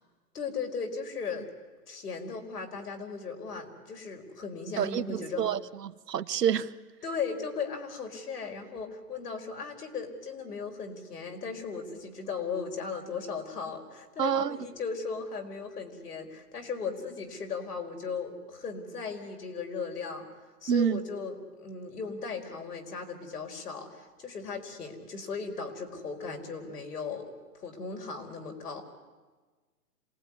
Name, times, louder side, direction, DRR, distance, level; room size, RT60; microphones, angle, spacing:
voice 1, 0.3-1.5 1.9-5.5 7.0-20.3 20.6-28.8, left 5 dB, 70° left, 5.0 m, -37 dB
voice 2, 4.8-6.7 14.2-14.6 20.7-21.0, right 8 dB, 75° right, 1.1 m, -28 dB
27.0 x 19.0 x 9.8 m
hypercardioid pair, 175°, 48 cm